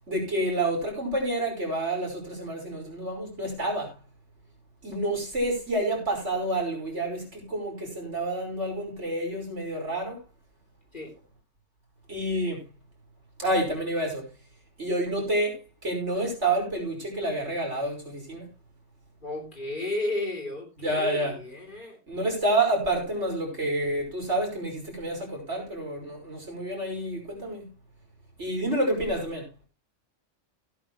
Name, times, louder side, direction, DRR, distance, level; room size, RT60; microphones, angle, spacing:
voice 1, 0.1-3.9 4.8-10.2 12.1-12.6 13.4-14.3 14.8-18.5 20.8-21.3 22.1-27.7 28.4-29.4, right 1 dB, 65° right, 5.9 m, -29 dB
voice 2, 19.2-22.0 29.0-29.2, left 2 dB, 40° left, 3.5 m, -33 dB
17.0 x 9.6 x 3.1 m
omnidirectional pair, 1.3 m